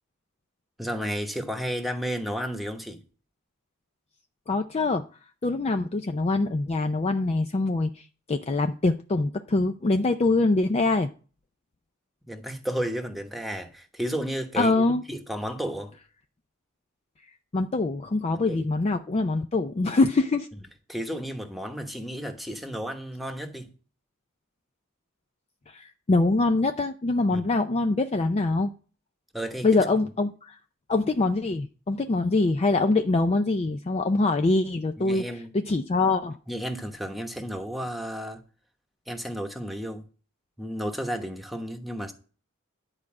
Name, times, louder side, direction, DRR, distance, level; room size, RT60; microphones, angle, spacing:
voice 1, 0.8-3.0 12.3-14.7 15.1-15.9 18.5-18.6 20.9-23.7 27.3-27.5 29.3-29.7 35.0-35.5 36.5-38.4 39.1-40.0 40.6-42.1, equal, ahead, 1.1 m, -32 dB
voice 2, 4.5-5.0 5.4-11.1 14.6-15.0 17.5-20.5 25.7-28.7 29.6-30.6 30.9-35.2 35.5-36.4, left 3 dB, 30° left, 0.4 m, -24 dB
11.0 x 4.7 x 7.5 m
head